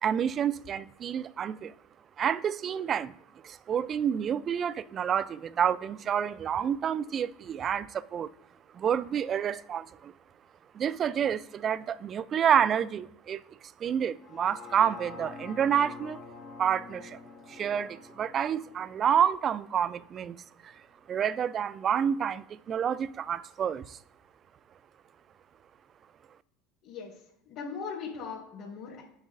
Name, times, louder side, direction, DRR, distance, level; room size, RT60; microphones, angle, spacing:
voice 1, 0.0-1.7 2.2-3.1 3.4-8.3 8.7-10.1 10.7-13.4 13.8-16.2 16.6-17.2 17.5-20.7 21.1-24.0, right 8 dB, 40° right, 0.4 m, -29 dB
sound 1, 14.2-20.3 20.7-20.8, left 4 dB, 40° left, 1.7 m, -47 dB
voice 2, 26.8-29.0, left 5 dB, 60° left, 2.7 m, -39 dB
10.0 x 5.9 x 2.5 m
hypercardioid pair, 85°, 0 cm